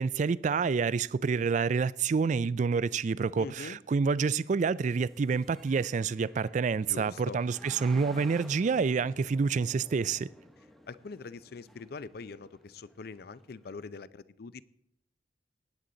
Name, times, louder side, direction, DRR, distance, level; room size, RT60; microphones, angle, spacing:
voice 1, 0.0-10.3, right 5 dB, 45° right, 0.3 m, -28 dB
sound 1, 3.2-13.9, equal, ahead, 0.9 m, -54 dB
voice 2, 3.4-3.8 6.8-7.4 10.9-14.6, left 4 dB, 60° left, 0.5 m, -43 dB
18.5 x 8.3 x 3.9 m
head